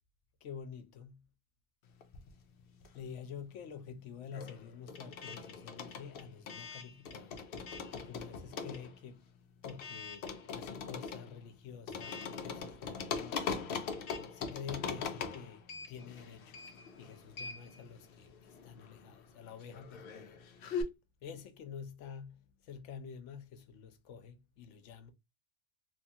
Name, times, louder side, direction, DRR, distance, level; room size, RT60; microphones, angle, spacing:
voice 1, 0.4-1.2 2.9-7.4 7.9-9.3 9.6-13.9 14.2-16.6 17.0-20.4 21.2-25.1, left 7 dB, 80° left, 0.9 m, -48 dB
sound 1, 2.0-3.3 3.5-20.8, left 5 dB, 60° left, 0.7 m, -42 dB
3.1 x 2.3 x 2.7 m
omnidirectional pair, 1.3 m